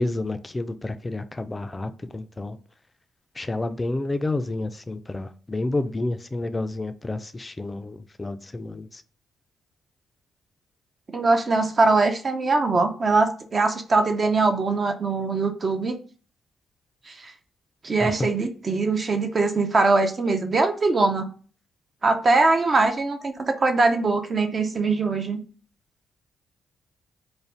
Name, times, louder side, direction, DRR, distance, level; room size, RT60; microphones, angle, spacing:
voice 1, 0.0-2.6 3.4-8.9 18.0-18.1, left 2 dB, 25° left, 0.3 m, -29 dB
voice 2, 11.1-16.0 17.1-17.3 17.8-21.3 22.0-25.4, right 3 dB, 45° right, 0.5 m, -22 dB
2.5 x 2.1 x 3.3 m
supercardioid pair, 55°, 0 cm